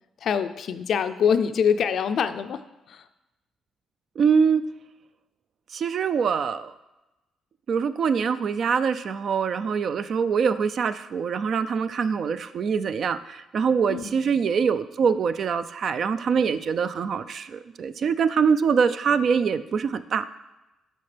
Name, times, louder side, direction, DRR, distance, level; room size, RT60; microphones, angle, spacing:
voice 1, 0.2-3.1 13.9-14.1, left 7 dB, 65° left, 11 dB, 0.4 m, -25 dB
voice 2, 4.2-4.6 5.7-6.7 7.7-20.2, right 6 dB, 60° right, 12 dB, 0.4 m, -24 dB
12.5 x 4.4 x 3.3 m, 1.0 s
cardioid pair, 90°, 0 cm